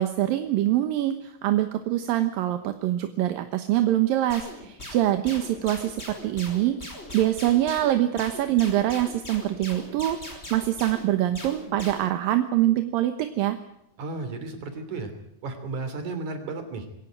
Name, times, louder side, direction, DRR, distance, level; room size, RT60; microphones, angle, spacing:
voice 1, 0.0-6.8 7.1-10.2 10.5-13.6, right 13 dB, 75° right, 8 dB, 2.8 m, -24 dB
Laser Bullet, 4.3-12.2, left 1 dB, 15° left, 5.5 m, -40 dB
voice 2, 14.0-15.1 15.4-16.9, right 3 dB, 55° right, 8 dB, 4.3 m, -33 dB
23.0 x 17.0 x 9.4 m, 0.80 s
omnidirectional pair, 4.2 m